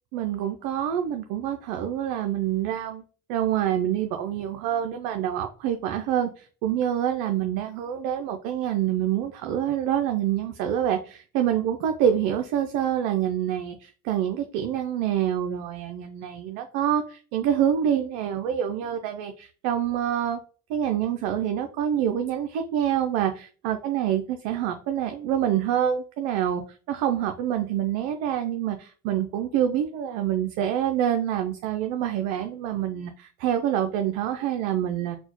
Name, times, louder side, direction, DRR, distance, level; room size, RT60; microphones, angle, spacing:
voice 1, 0.1-3.0 3.3-20.4 20.7-26.6 26.9-35.2, right 10 dB, 85° right, 5 dB, 0.5 m, -26 dB
4.2 x 2.1 x 2.9 m, 0.39 s
supercardioid pair, 85°, 33 cm